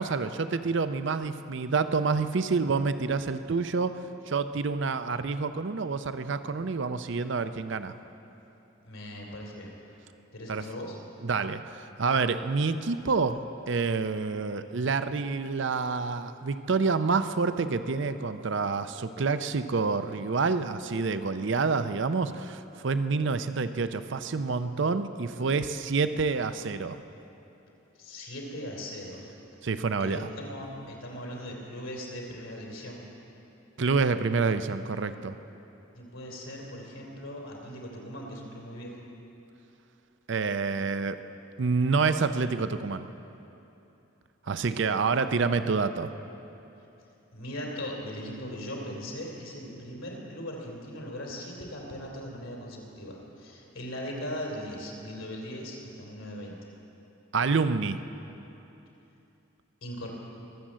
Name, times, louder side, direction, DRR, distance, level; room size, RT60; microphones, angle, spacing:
voice 1, 0.0-4.0 4.3-7.9 10.5-10.6 11.2-27.0 29.6-30.3 33.8-35.3 40.3-41.2 41.6-43.1 44.5-46.1 57.3-58.0, right 4 dB, 55° right, 11 dB, 0.5 m, -28 dB
voice 2, 8.7-9.7 10.3-11.0 28.0-29.2 30.0-33.0 35.9-39.0 44.4-44.8 47.3-56.7 59.8-60.1, equal, 75° left, -1 dB, 2.9 m, -39 dB
23.0 x 7.6 x 7.4 m, 2.9 s
head